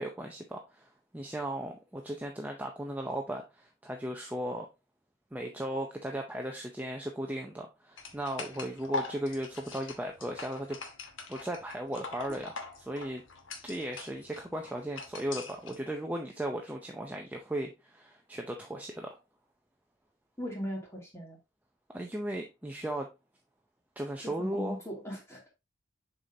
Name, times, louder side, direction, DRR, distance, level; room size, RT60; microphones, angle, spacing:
voice 1, 0.0-4.7 5.3-10.8 11.3-13.2 13.6-19.2 21.9-23.1 24.0-24.8, right 1 dB, 10° right, 2 dB, 0.6 m, -36 dB
sound 1, 8.0-15.8, left 3 dB, 75° left, 1.2 m, -42 dB
voice 2, 20.4-21.4 24.2-25.5, equal, 15° left, -2 dB, 2.6 m, -39 dB
7.0 x 5.1 x 2.7 m, 0.25 s
head